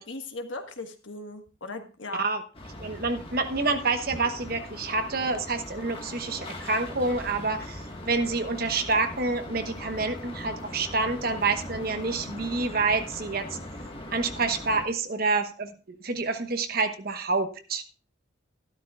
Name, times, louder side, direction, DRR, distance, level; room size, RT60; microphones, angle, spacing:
voice 1, 0.0-2.2, left 2 dB, 80° left, 5 dB, 1.5 m, -38 dB
sound 1, 2.5-14.8, left 1 dB, 30° left, 1.6 m, -40 dB
voice 2, 2.8-13.6 14.1-17.8, right 3 dB, 50° right, 7 dB, 1.1 m, -28 dB
13.0 x 12.0 x 2.4 m, 0.35 s
head